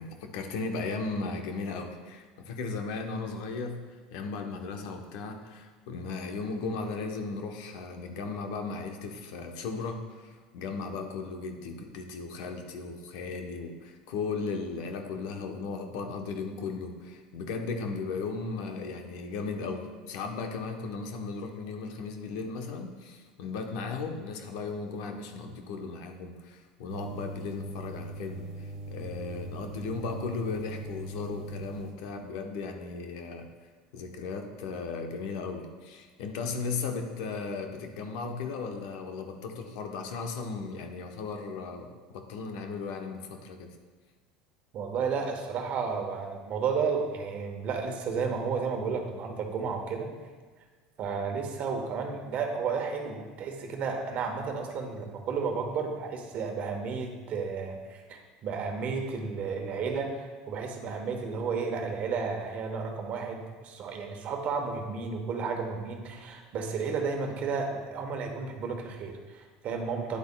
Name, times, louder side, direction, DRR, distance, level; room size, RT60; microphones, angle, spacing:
voice 1, 0.0-3.8 4.1-33.5 33.9-43.7, left 4 dB, 75° left, 4 dB, 0.9 m, -36 dB
sound 1, 26.9-31.9, right 2 dB, 80° right, 1.4 m, -41 dB
voice 2, 44.7-50.1 51.0-70.2, right 5 dB, 50° right, 3 dB, 1.1 m, -32 dB
9.5 x 8.1 x 2.2 m, 1.4 s
supercardioid pair, 110°, 3 cm